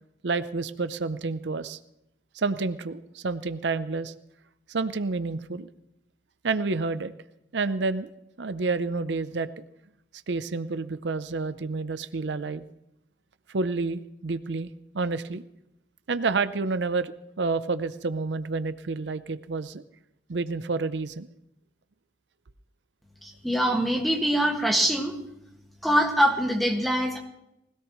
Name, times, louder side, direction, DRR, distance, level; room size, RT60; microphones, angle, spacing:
voice 1, 0.2-1.8 2.3-4.1 4.7-5.7 6.4-7.1 7.5-8.1 8.4-9.5 10.3-12.6 13.5-15.4 16.1-19.8 20.3-21.3, right 3 dB, 85° right, 13 dB, 0.6 m, -29 dB
voice 2, 23.2-25.2 25.8-27.2, equal, ahead, 1 dB, 1.8 m, -24 dB
20.0 x 17.0 x 3.1 m, 0.84 s
head